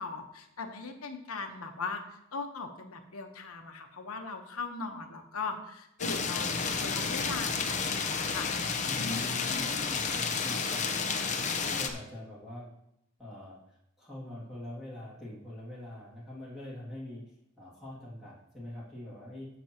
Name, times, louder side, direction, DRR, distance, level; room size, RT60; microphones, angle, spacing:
voice 1, 0.0-8.5 8.9-9.6, left 4 dB, 90° left, 5 dB, 1.1 m, -39 dB
sound 1, 6.0-11.9, left 5 dB, 35° left, 0.8 m, -31 dB
voice 2, 8.9-11.2 11.5-12.7 13.2-17.2 17.6-19.5, left 1 dB, ahead, -8 dB, 2.4 m, -43 dB
15.5 x 6.1 x 2.9 m, 0.78 s
head